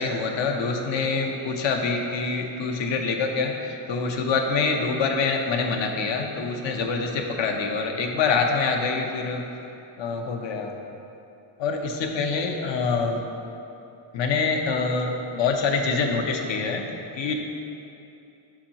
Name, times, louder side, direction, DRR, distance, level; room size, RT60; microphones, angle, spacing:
voice 1, 0.0-9.4 10.0-10.7 11.6-13.2 14.1-17.3, left 4 dB, 65° left, 3 dB, 0.8 m, -25 dB
7.3 x 5.5 x 2.9 m, 2.8 s
cardioid pair, 115°, 48 cm